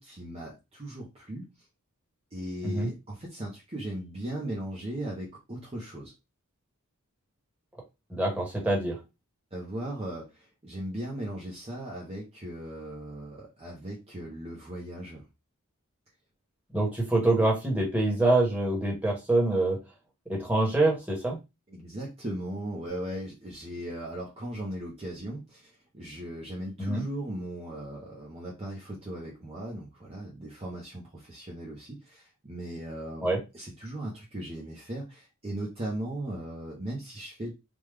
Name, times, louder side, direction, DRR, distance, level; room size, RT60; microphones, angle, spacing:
voice 1, 0.0-1.5 2.3-6.1 9.5-15.2 21.7-33.3 33.5-37.5, right 1 dB, 30° right, -2 dB, 0.7 m, -38 dB
voice 2, 8.1-9.0 16.7-19.8 20.3-21.4 26.8-27.0 33.2-33.4, right 2 dB, 5° right, -2 dB, 1.2 m, -25 dB
3.4 x 2.2 x 3.2 m, 0.25 s
head